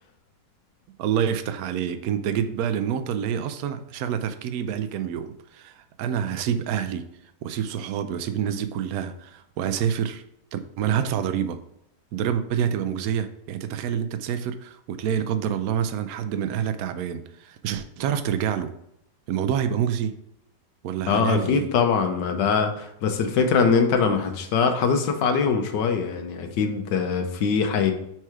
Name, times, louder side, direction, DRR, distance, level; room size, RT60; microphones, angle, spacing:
voice 1, 1.0-7.1 7.4-10.2 10.5-11.6 12.1-18.7 19.3-20.2 20.8-21.7, right 8 dB, 70° right, 0.9 m, -27 dB
voice 2, 21.1-27.9, left 5 dB, 80° left, 1.4 m, -22 dB
4.5 x 4.5 x 4.8 m
omnidirectional pair, 1.9 m